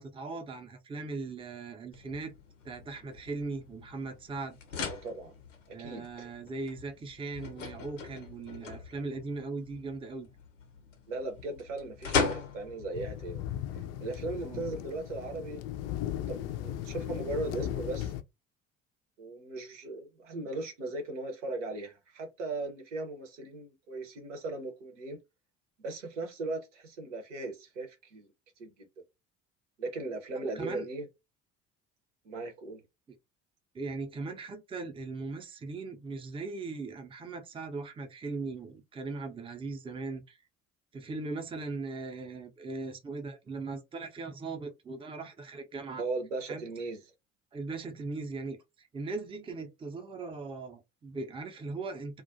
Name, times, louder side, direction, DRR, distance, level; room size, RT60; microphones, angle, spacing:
voice 1, 0.0-2.3 2.6-4.6 5.7-10.3 14.4-14.6 30.3-30.9 33.7-40.4 40.9-46.0 46.5-46.6 47.5-52.2, right 3 dB, 15° right, 0.5 m, -39 dB
sound 1, 1.9-14.9, left 5 dB, 85° left, 0.6 m, -39 dB
voice 2, 4.9-5.3 5.8-6.3 11.1-13.4 14.0-16.0 16.3-18.1 19.2-25.2 25.8-28.3 28.6-28.9 29.8-31.1 32.2-32.8 46.0-47.1, right 3 dB, 80° right, 0.8 m, -38 dB
sound 2, 12.9-18.2, left 11 dB, 45° left, 0.4 m, -37 dB
2.3 x 2.1 x 2.6 m
figure-of-eight pair, 55°, 37 cm